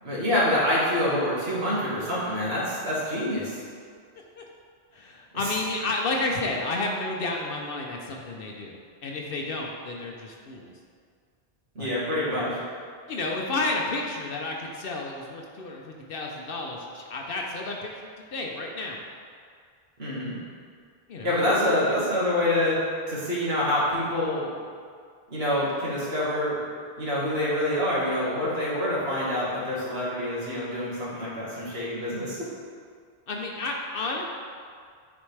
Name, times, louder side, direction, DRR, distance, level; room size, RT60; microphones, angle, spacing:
voice 1, 0.0-3.6 5.4-5.6 11.8-12.6 20.0-20.3 21.2-22.8 23.1-24.4 25.3-26.6 27.0-32.4, left 1 dB, 80° right, -7 dB, 2.0 m, -26 dB
voice 2, 4.9-8.8 9.0-10.7 11.8-11.9 13.1-19.0 21.1-22.0 33.3-34.2, left 2 dB, 65° left, 0 dB, 0.8 m, -31 dB
9.5 x 4.2 x 3.3 m, 2.1 s
omnidirectional pair, 1.0 m